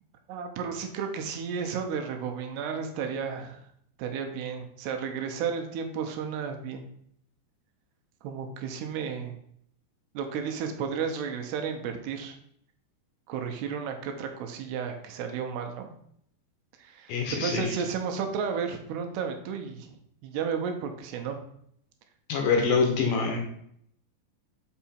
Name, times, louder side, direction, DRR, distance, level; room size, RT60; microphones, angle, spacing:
voice 1, 0.3-3.6 4.0-6.9 8.2-9.3 10.1-12.4 13.3-16.0 16.8-17.2 17.4-19.9 20.2-21.4, right 6 dB, 85° right, 5 dB, 2.8 m, -33 dB
voice 2, 17.1-17.7 22.3-23.4, left 5 dB, 75° left, 3 dB, 2.5 m, -25 dB
5.9 x 5.7 x 4.3 m, 0.68 s
omnidirectional pair, 4.8 m